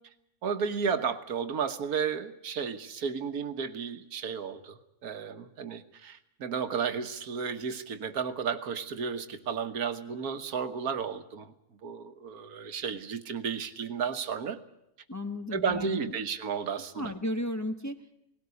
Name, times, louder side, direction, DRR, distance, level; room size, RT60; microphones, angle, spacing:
voice 1, 0.4-11.5 11.8-14.6 15.5-17.1, right 6 dB, 90° right, 10 dB, 1.6 m, -33 dB
voice 2, 15.1-16.2 16.9-18.1, left 1 dB, 15° left, 6 dB, 0.8 m, -34 dB
18.5 x 17.0 x 9.6 m, 0.83 s
omnidirectional pair, 1.5 m